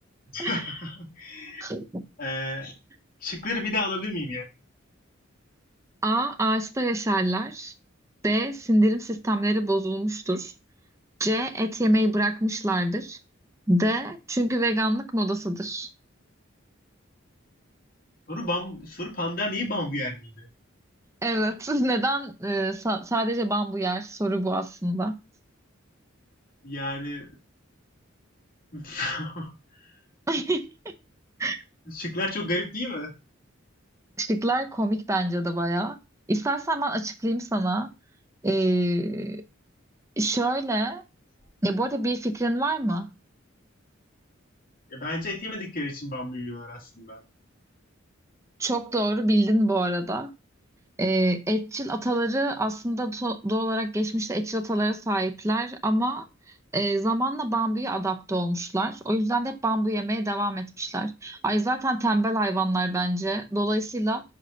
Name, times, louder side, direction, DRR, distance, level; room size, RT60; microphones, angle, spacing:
voice 1, 0.3-1.6 2.2-2.7 3.2-4.5 18.3-20.5 26.6-27.3 28.7-29.5 29.8-30.0 31.9-33.1 44.9-47.2, left 2 dB, 45° left, 2.1 m, -31 dB
voice 2, 1.6-2.0 6.0-7.7 8.2-10.5 11.2-13.2 13.7-15.9 21.2-25.1 30.3-30.9 31.4-31.6 34.2-36.0 36.3-37.9 38.4-39.4 40.2-41.0 41.6-43.1 48.6-50.3 51.0-56.3 56.7-64.2, right 1 dB, 15° right, 0.6 m, -26 dB
5.5 x 5.0 x 3.7 m
head